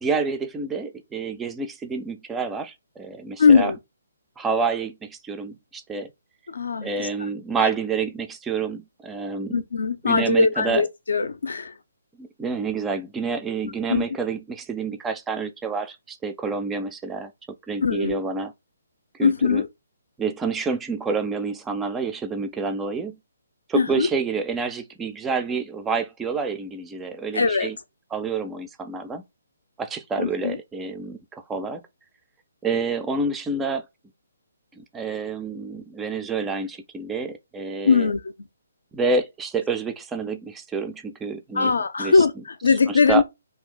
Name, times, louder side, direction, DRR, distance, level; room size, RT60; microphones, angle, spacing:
voice 1, 0.0-3.7 4.4-6.1 6.8-9.6 10.1-10.8 12.2-17.3 17.7-18.5 19.2-19.6 20.2-23.2 23.7-27.8 28.1-29.2 29.8-31.8 32.6-33.8 34.8-38.1 38.9-42.2 42.9-43.2, right 4 dB, 10° right, 0.3 m, -28 dB
voice 2, 3.4-3.8 6.5-7.3 9.5-11.7 13.9-14.0 17.8-18.2 19.2-19.7 23.7-24.1 27.3-27.7 30.2-30.6 37.8-38.3 41.5-43.2, left 5 dB, 65° left, 0.5 m, -21 dB
2.7 x 2.4 x 3.7 m
figure-of-eight pair, 135°, 0 cm